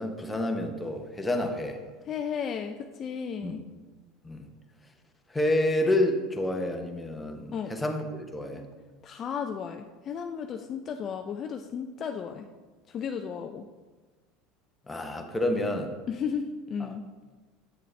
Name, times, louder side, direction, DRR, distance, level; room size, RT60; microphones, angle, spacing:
voice 1, 0.0-1.8 3.4-3.5 4.2-4.5 5.3-8.6 14.9-16.0 16.8-16.9, left 1 dB, 10° left, 4 dB, 0.8 m, -29 dB
voice 2, 2.1-3.6 7.5-7.7 9.0-12.5 12.9-13.7 16.1-17.0, left 7 dB, 35° left, 5 dB, 0.4 m, -34 dB
7.8 x 6.6 x 3.2 m, 1.3 s
supercardioid pair, 130°, 0 cm